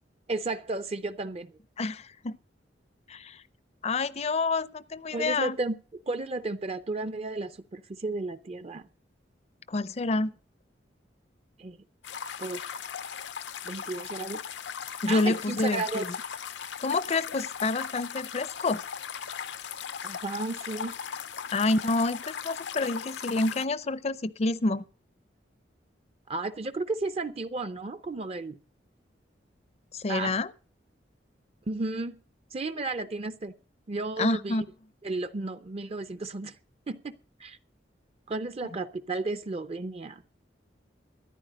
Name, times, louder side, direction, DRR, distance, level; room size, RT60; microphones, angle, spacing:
voice 1, 0.3-1.5 5.1-5.8 6.1-8.8 11.6-11.8 12.4-12.6 13.6-14.4 15.1-16.0 20.0-20.9 26.3-28.6 30.1-30.4 31.7-32.2 32.5-33.5 33.9-34.6 35.0-36.6 36.9-37.1 37.4-37.6 38.3-40.2, right 3 dB, 35° right, 0.5 m, -33 dB
voice 2, 1.8-2.4 3.1-3.4 3.8-5.6 9.7-10.3 15.0-16.1 16.8-18.8 21.5-24.8 29.9-30.5 34.2-34.6, left 3 dB, 35° left, 0.5 m, -28 dB
sound 1, 12.0-23.7, left 7 dB, 80° left, 0.7 m, -38 dB
14.0 x 10.5 x 5.1 m
head